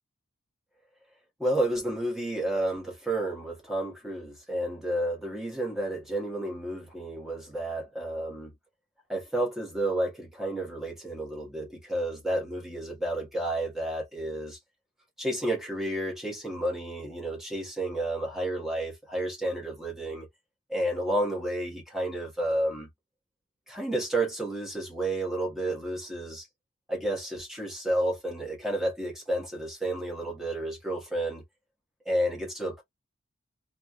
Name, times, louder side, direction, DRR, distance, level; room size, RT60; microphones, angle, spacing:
voice 1, 1.4-8.5 9.1-14.6 15.2-20.3 20.7-22.9 23.7-26.5 26.9-31.4 32.0-32.8, right 1 dB, ahead, 1.3 m, -31 dB
3.2 x 2.6 x 2.3 m
head